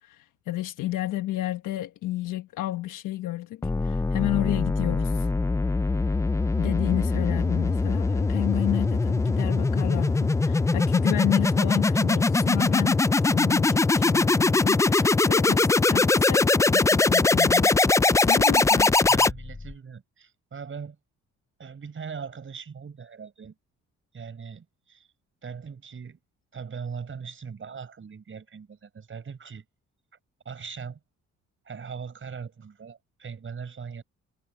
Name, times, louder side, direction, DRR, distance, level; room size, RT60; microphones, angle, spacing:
voice 1, 0.0-5.3 6.6-17.7 18.2-18.9, left 15 dB, 90° left, 1.3 m, -31 dB
sound 1, 3.6-19.7, left 3 dB, 10° left, 0.3 m, -22 dB
voice 2, 19.1-21.0 21.6-23.5 24.1-25.1 25.4-26.2 26.5-29.6 30.4-31.0 31.6-34.0, right 6 dB, 40° right, 6.0 m, -40 dB
cardioid pair, 90°, 30 cm